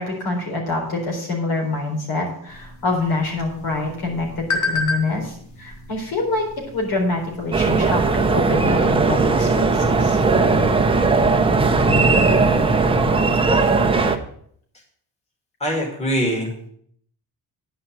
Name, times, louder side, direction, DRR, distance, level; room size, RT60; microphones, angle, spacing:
voice 1, 0.0-10.2 11.7-12.2, left 2 dB, 75° left, 1 dB, 4.1 m, -26 dB
sound 1, 2.5-7.6, left 3 dB, 50° left, 2.1 m, -31 dB
sound 2, 7.5-14.2, right 3 dB, 15° right, 0.7 m, -18 dB
voice 2, 15.6-16.7, equal, 15° left, 0 dB, 2.4 m, -23 dB
9.8 x 5.5 x 7.5 m, 0.63 s
cardioid pair, 135°, 38 cm